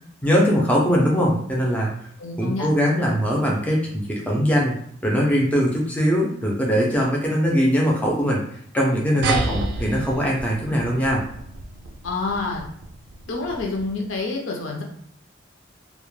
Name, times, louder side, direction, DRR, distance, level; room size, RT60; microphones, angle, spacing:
voice 1, 0.2-1.9 2.4-4.7 5.0-8.4 8.7-11.2, equal, 5° left, -3 dB, 0.4 m, -21 dB
voice 2, 2.2-2.7 12.0-12.7 13.3-14.8, left 3 dB, 75° left, 0 dB, 0.5 m, -27 dB
sound 1, 9.2-14.1, right 3 dB, 60° right, 0.3 m, -30 dB
2.1 x 2.1 x 3.0 m, 0.66 s
head